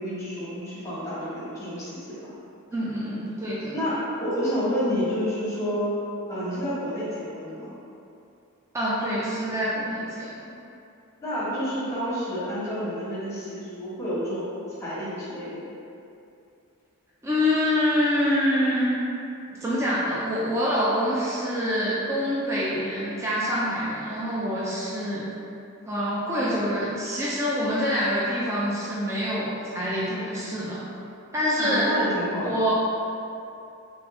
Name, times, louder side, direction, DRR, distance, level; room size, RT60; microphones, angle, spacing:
voice 1, 0.0-2.3 3.7-6.0 6.3-7.7 11.2-14.5 14.8-15.7 31.6-32.6, equal, 15° left, -10 dB, 1.2 m, -29 dB
voice 2, 2.7-3.8 8.7-10.5 17.2-19.0 19.6-25.3 25.9-30.8 31.3-31.9 32.4-32.7, equal, 15° right, -8 dB, 0.4 m, -26 dB
3.4 x 3.3 x 3.0 m, 2.7 s
head